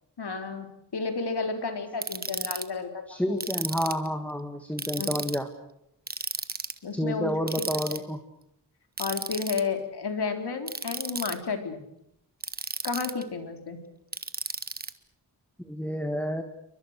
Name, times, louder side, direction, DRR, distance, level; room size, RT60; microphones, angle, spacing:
voice 1, 0.2-3.4 5.0-5.2 6.8-7.3 7.6-7.7 7.9-8.0 9.0-11.8 12.8-13.8, left 4 dB, 75° left, 5 dB, 4.0 m, -32 dB
Ratchet pawl, 2.0-2.6 3.4-4.1 4.8-5.4 6.1-6.8 7.5-8.0 9.0-9.6 10.7-11.3 12.4-13.2 14.1-14.9, right 3 dB, 25° right, 1.4 m, -33 dB
voice 2, 3.1-5.5 6.9-8.2 15.6-16.4, equal, 5° left, 6 dB, 2.0 m, -29 dB
29.5 x 24.0 x 6.6 m, 0.79 s
wide cardioid pair, 135°, 40 cm